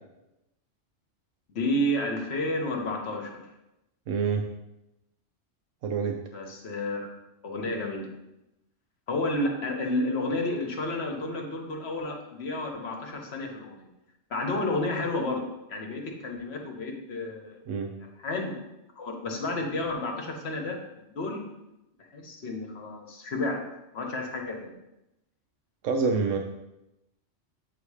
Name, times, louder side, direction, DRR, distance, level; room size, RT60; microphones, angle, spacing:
voice 1, 1.5-3.4 6.3-7.0 7.4-8.1 9.1-13.9 14.3-15.4 15.7-18.5 19.0-21.4 22.1-23.6 23.9-24.7, left 1 dB, 60° left, 2 dB, 1.2 m, -31 dB
voice 2, 4.1-4.5 5.8-6.2 17.7-17.9 25.8-26.4, right 5 dB, 85° right, 3 dB, 0.9 m, -26 dB
8.0 x 2.7 x 4.8 m, 0.92 s
omnidirectional pair, 1.3 m